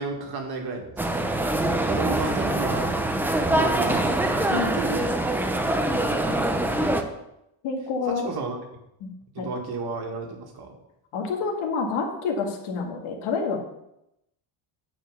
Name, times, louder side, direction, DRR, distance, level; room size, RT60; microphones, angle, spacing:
voice 1, 0.0-1.3 1.9-2.9 3.5-5.3 6.6-7.1 8.2-8.6 9.3-10.8, right 4 dB, 50° right, 3 dB, 1.8 m, -33 dB
sound 1, 1.0-7.0, right 1 dB, 5° right, 0.4 m, -24 dB
voice 2, 4.5-4.9 6.2-6.6 7.6-8.3 9.0-9.5 11.1-13.6, left 4 dB, 80° left, 2 dB, 2.0 m, -29 dB
9.3 x 4.8 x 6.5 m, 0.85 s
cardioid pair, 155°, 49 cm